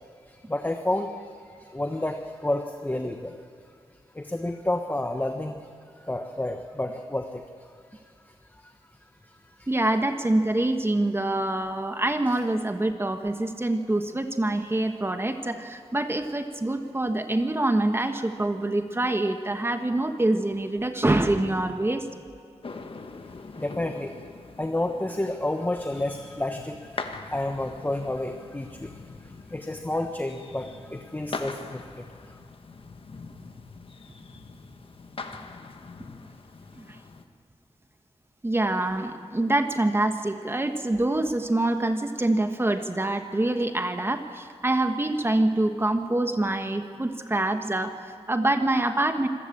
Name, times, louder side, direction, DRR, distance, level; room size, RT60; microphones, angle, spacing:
voice 1, 0.5-1.2 1.5-3.4 4.1-5.6 6.0-7.4 9.6-9.7 23.6-24.1 24.6-28.9 29.5-32.0, left 1 dB, 15° left, 5 dB, 1.1 m, -30 dB
voice 2, 9.7-22.0 36.8-37.0 38.4-49.3, right 1 dB, 20° right, 6 dB, 1.3 m, -25 dB
sound 1, 22.6-37.3, left 4 dB, 55° left, 1.4 m, -42 dB
26.5 x 14.5 x 8.6 m, 2.4 s
wide cardioid pair, 95°, 11 cm